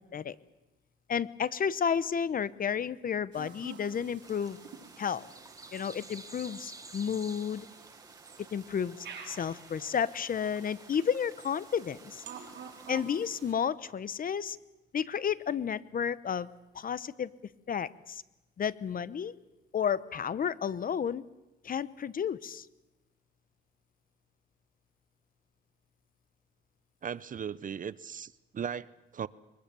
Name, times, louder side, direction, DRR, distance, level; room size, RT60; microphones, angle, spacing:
voice 1, 1.1-4.6 5.0-5.3 5.7-7.7 8.5-12.2 12.9-14.6 14.9-16.5 16.7-17.3 17.7-18.2 18.6-19.3 19.7-21.2 21.6-22.7, left 7 dB, 45° left, 17 dB, 0.9 m, -32 dB
sound 1, 3.3-13.5, right 7 dB, 65° right, 4.6 m, -50 dB
sound 2, 4.2-12.9, right 2 dB, 15° right, 1.5 m, -52 dB
voice 2, 27.0-29.3, right 7 dB, 40° right, 18 dB, 0.7 m, -38 dB
22.5 x 21.5 x 7.0 m, 1.0 s
cardioid pair, 90°, 20 cm